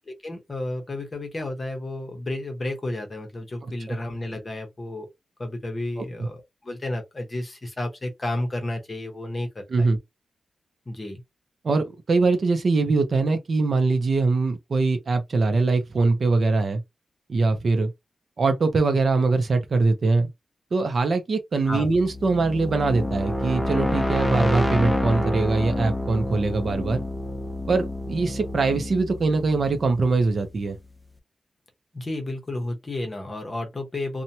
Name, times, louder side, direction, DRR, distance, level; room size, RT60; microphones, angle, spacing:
voice 1, 0.1-5.1 5.4-9.9 10.9-11.2 21.7-21.9 31.9-34.2, left 1 dB, 25° left, 0.8 m, -32 dB
voice 2, 6.0-6.3 9.7-10.0 11.6-16.8 17.3-17.9 18.4-20.3 20.7-27.0 27.7-30.8, right 3 dB, 40° right, 0.6 m, -22 dB
sound 1, 21.7-30.5, left 1 dB, 5° left, 0.5 m, -28 dB
2.8 x 2.1 x 2.7 m
wide cardioid pair, 175°, 0 cm